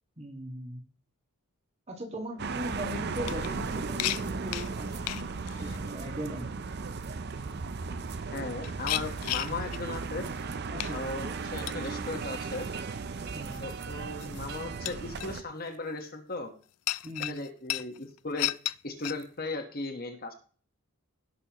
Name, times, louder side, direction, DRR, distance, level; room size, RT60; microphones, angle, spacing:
voice 1, 0.2-0.8 1.9-6.6 10.7-11.1 13.3-13.6 17.0-17.4, equal, 30° right, 2 dB, 2.0 m, -39 dB
sound 1, 2.4-15.4, right 4 dB, 45° right, 0.5 m, -36 dB
sound 2, 3.1-5.8 7.8-7.9 8.4-9.9 10.2-10.5 10.8-11.2 11.6-11.9 12.6-12.7 13.2-13.6 14.2-14.6 14.9-15.3 16.9-18.8 19.0-19.2, left 15 dB, 85° left, 0.4 m, -35 dB
voice 2, 8.3-10.3 10.9-12.7 13.6-16.5 17.2-18.5 18.8-20.3, left 2 dB, 40° left, 5 dB, 1.4 m, -37 dB
16.5 x 6.7 x 3.0 m, 0.41 s
head